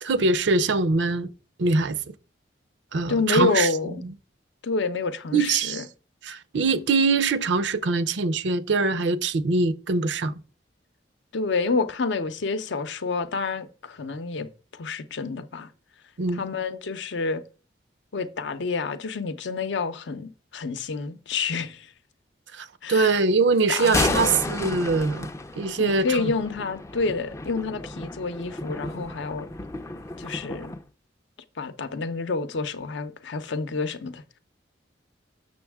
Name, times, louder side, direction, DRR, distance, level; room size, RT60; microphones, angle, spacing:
voice 1, 0.0-1.3 1.6-2.1 2.9-3.7 4.0-4.1 5.3-5.8 6.2-10.4 16.2-16.4 22.5-26.3, right 3 dB, 75° right, 0.5 m, -23 dB
voice 2, 3.1-4.1 4.6-5.9 11.3-14.5 14.8-15.7 16.3-17.4 18.1-21.9 22.8-23.2 23.7-24.5 25.8-29.5 30.2-30.8 31.6-34.2, left 4 dB, 75° left, 0.6 m, -28 dB
Thunder, 23.6-30.8, left 2 dB, 15° left, 0.3 m, -32 dB
6.7 x 6.2 x 3.5 m
head